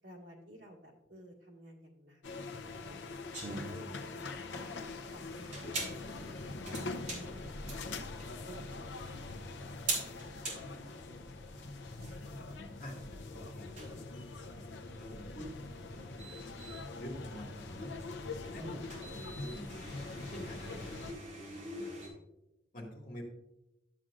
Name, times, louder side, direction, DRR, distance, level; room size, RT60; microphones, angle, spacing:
voice 1, 0.0-3.1 3.5-6.3 6.6-7.8 8.2-9.3, right 1 dB, 80° right, -2 dB, 1.8 m, -53 dB
sound 1, 2.2-21.1, left 3 dB, 70° left, 0.7 m, -43 dB
sound 2, 3.3-22.1, right 2 dB, 40° right, 3.3 m, -45 dB
voice 2, 10.3-12.4 12.8-13.0 13.3-14.0 14.5-16.3 17.0-17.9 18.5-19.9 20.3-22.0 22.7-23.2, equal, 45° left, -1 dB, 2.0 m, -49 dB
12.5 x 7.5 x 2.5 m, 0.91 s
head